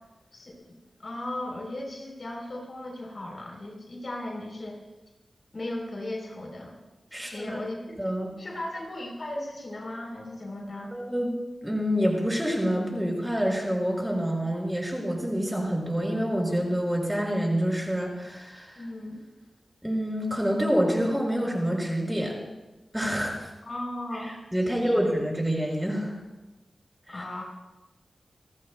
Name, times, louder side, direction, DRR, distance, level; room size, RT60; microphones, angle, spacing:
voice 1, 0.3-4.8 5.5-6.8 7.1-8.0 8.4-10.9 18.7-19.2 23.7-24.3 24.6-25.0 27.1-27.4, left 1 dB, 60° left, 0 dB, 3.5 m, -37 dB
voice 2, 7.1-7.6 8.0-8.3 10.9-11.3 11.6-18.8 19.8-22.4 22.9-23.4 24.5-26.1 27.1-27.2, equal, 5° right, -1 dB, 5.5 m, -27 dB
28.5 x 14.0 x 2.2 m, 1.1 s
cardioid pair, 55°, 0 cm